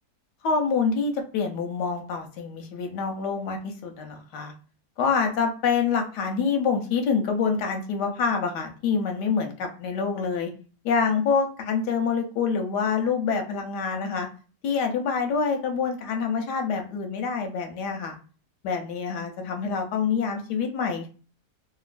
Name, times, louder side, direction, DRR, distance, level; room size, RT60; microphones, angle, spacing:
voice 1, 0.4-4.5 5.0-10.5 10.8-14.3 14.6-18.2 18.6-21.1, left 5 dB, 90° left, 4 dB, 1.3 m, -26 dB
3.0 x 2.5 x 2.4 m, 0.38 s
omnidirectional pair, 1.7 m